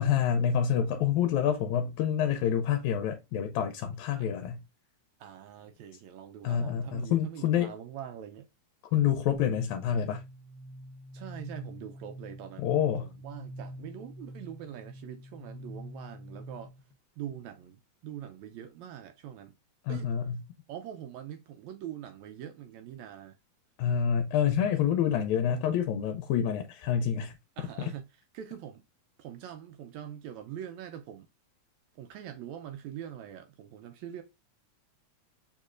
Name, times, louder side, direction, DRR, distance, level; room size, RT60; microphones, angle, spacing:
voice 1, 0.0-4.6 6.4-7.7 8.9-10.2 12.6-13.1 19.8-20.4 23.8-27.4, left 8 dB, 80° left, 1.8 m, -27 dB
voice 2, 5.2-8.5 11.1-12.7 13.0-16.7 17.2-19.5 19.9-20.1 20.7-23.4 27.1-27.2 27.6-28.1 28.3-28.8 29.2-31.3 32.0-34.2, right 10 dB, 80° right, 1.7 m, -43 dB
sound 1, 9.3-16.9, equal, 45° left, 1.3 m, -45 dB
6.5 x 3.1 x 2.4 m
omnidirectional pair, 3.5 m